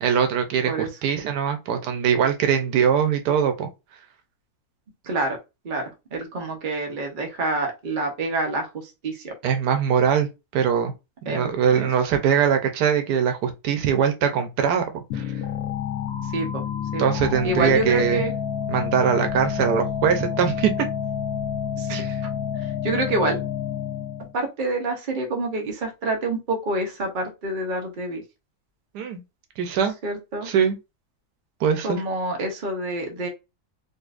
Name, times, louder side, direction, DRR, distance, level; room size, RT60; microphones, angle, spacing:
voice 1, 0.0-3.7 9.4-10.3 10.5-10.9 11.3-15.2 17.0-18.2 18.7-20.7 21.9-22.2 28.9-29.2 29.6-29.9 30.4-30.8 31.6-32.0, right 7 dB, 85° right, 1.3 m, -22 dB
voice 2, 5.1-5.4 5.6-9.3 11.3-11.9 16.3-16.6 16.9-17.0 17.4-18.3 21.8-22.0 22.8-23.4 24.3-28.2 30.0-30.5 31.8-33.3, right 2 dB, 40° right, 0.8 m, -27 dB
sound 1, 15.1-24.3, left 8 dB, 75° left, 1.0 m, -29 dB
4.0 x 2.5 x 2.4 m
omnidirectional pair, 1.7 m